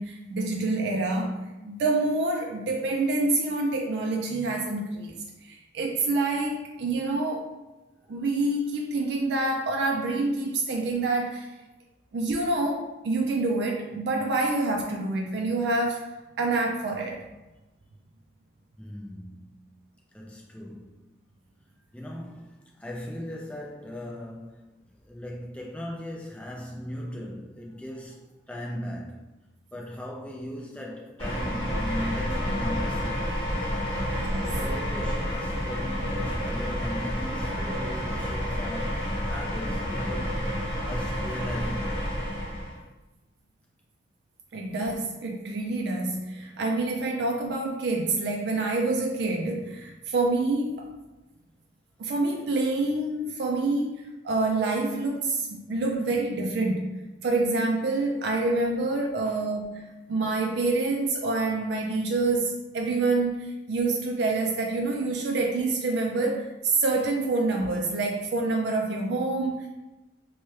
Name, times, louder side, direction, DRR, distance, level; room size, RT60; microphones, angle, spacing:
voice 1, 0.0-7.5 8.1-11.5 12.1-16.1 16.4-17.3 34.2-34.6 44.5-50.9 52.0-69.7, right 2 dB, 65° right, 0.3 m, -27 dB
voice 2, 18.8-19.7 20.1-20.9 21.9-24.7 25.0-29.3 29.7-33.4 34.4-39.0 39.3-40.5 40.8-42.1 59.2-59.4, left 1 dB, 5° left, 0.4 m, -38 dB
sound 1, 31.2-42.8, equal, 30° left, 1.1 m, -29 dB
3.1 x 2.2 x 3.1 m
head